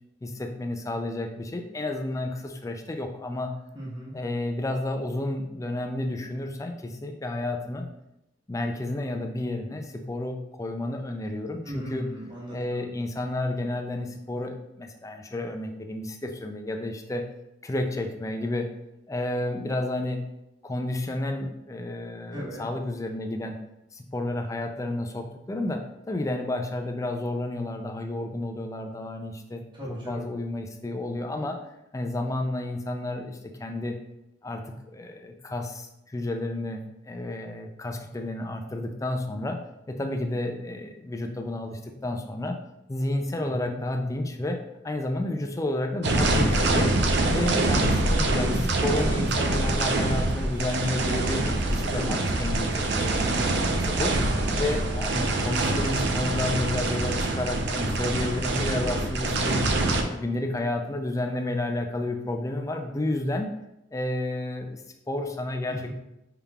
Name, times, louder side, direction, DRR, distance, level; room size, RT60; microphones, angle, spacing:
voice 1, 0.2-3.5 4.1-7.9 8.5-12.1 12.5-17.2 17.6-18.7 19.1-20.3 20.6-23.6 23.9-29.6 30.1-31.6 31.9-34.0 34.4-39.6 39.9-42.6 42.9-44.6 44.8-47.0 47.3-54.1 54.6-59.7 60.1-63.5 63.9-64.8 65.1-65.9, left 1 dB, 15° left, 4 dB, 0.4 m, -31 dB
voice 2, 3.7-4.2 11.6-12.9 22.3-22.7 29.7-30.3 43.4-43.8 54.6-55.0 65.7-65.9, equal, 25° right, -7 dB, 1.2 m, -38 dB
sound 1, 46.0-60.0, right 2 dB, 65° right, 0.5 m, -25 dB
5.6 x 3.5 x 2.3 m, 0.88 s
head